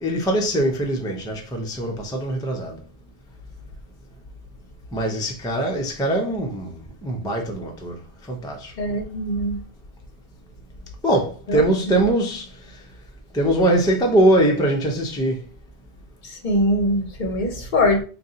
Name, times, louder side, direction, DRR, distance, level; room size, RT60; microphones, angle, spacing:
voice 1, 0.0-2.8 4.9-6.7 7.0-8.0 8.3-8.7 11.0-12.4 13.3-15.4, right 1 dB, 5° left, 0.3 m, -22 dB
voice 2, 8.8-9.6 11.5-12.1 16.2-18.0, left 1 dB, 55° left, 0.7 m, -23 dB
2.6 x 2.2 x 3.8 m
omnidirectional pair, 1.1 m